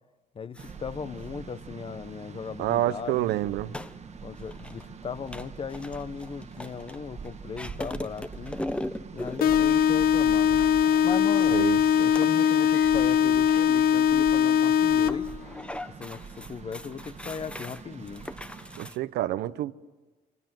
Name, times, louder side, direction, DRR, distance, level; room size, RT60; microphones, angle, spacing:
voice 1, 0.3-3.3 4.2-8.6 9.1-10.6 11.0-11.6 12.0-15.5 16.0-18.3, left 5 dB, 35° left, 1.1 m, -37 dB
sound 1, 0.5-19.0, left 1 dB, 5° left, 0.9 m, -42 dB
sound 2, 0.6-18.9, right 6 dB, 40° right, 1.7 m, -44 dB
voice 2, 2.6-3.7 11.5-12.1 18.8-19.7, right 14 dB, 80° right, 1.0 m, -28 dB
sound 3, 9.4-15.4, left 8 dB, 60° left, 0.8 m, -21 dB
29.5 x 25.5 x 7.7 m
cardioid pair, 110°, 17 cm